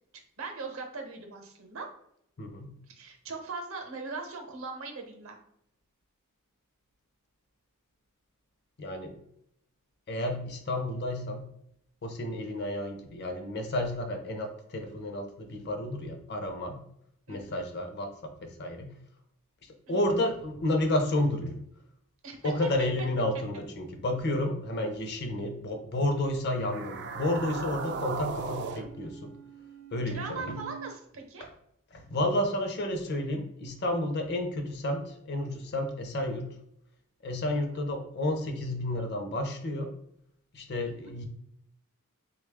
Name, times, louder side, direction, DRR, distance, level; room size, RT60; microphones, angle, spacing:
voice 1, 0.4-1.9 2.9-5.4 17.3-17.6 19.9-20.0 22.2-22.7 24.8-24.9 30.1-31.5 37.5-37.6 40.8-40.9, right 4 dB, 70° right, 3 dB, 0.7 m, -40 dB
voice 2, 2.4-2.7 8.8-9.2 10.1-11.5 12.0-16.8 17.3-18.9 19.9-21.6 22.4-29.3 29.9-30.6 31.9-36.5 37.2-39.9 40.5-41.3, left 1 dB, 50° left, 6 dB, 0.6 m, -31 dB
sound 1, 26.5-30.9, right 5 dB, 50° right, 0.3 m, -38 dB
3.4 x 2.2 x 3.4 m, 0.72 s
head